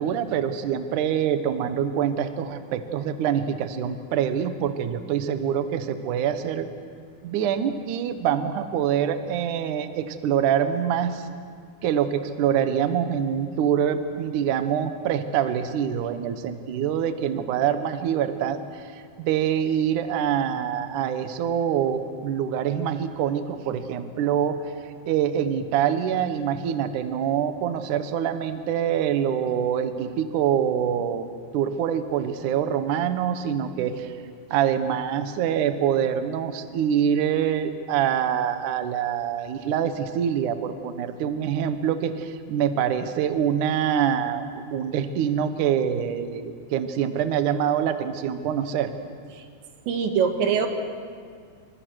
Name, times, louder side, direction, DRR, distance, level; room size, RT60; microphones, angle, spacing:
voice 1, 0.0-6.7 7.2-11.3 11.8-24.6 25.1-31.2 31.5-34.1 34.5-48.9, right 9 dB, 65° right, 9 dB, 2.1 m, -25 dB
voice 2, 49.9-50.7, right 7 dB, 80° right, 5 dB, 4.1 m, -23 dB
28.5 x 26.0 x 6.5 m, 2.1 s
omnidirectional pair, 5.1 m